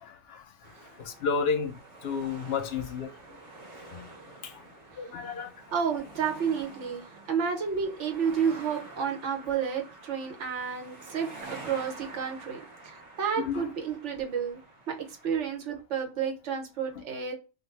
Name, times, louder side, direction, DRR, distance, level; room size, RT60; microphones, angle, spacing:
voice 1, 0.0-0.4 1.0-3.1 3.9-4.1 4.4-4.6 5.0-5.5 13.4-13.6 15.3-15.4, left 5 dB, 65° left, 0.7 m, -32 dB
sound 1, 0.6-15.6, right 3 dB, 30° right, 1.4 m, -48 dB
voice 2, 5.7-14.6 14.9-15.0 15.2-17.3, right 7 dB, 85° right, 1.1 m, -31 dB
2.6 x 2.3 x 3.1 m
omnidirectional pair, 1.2 m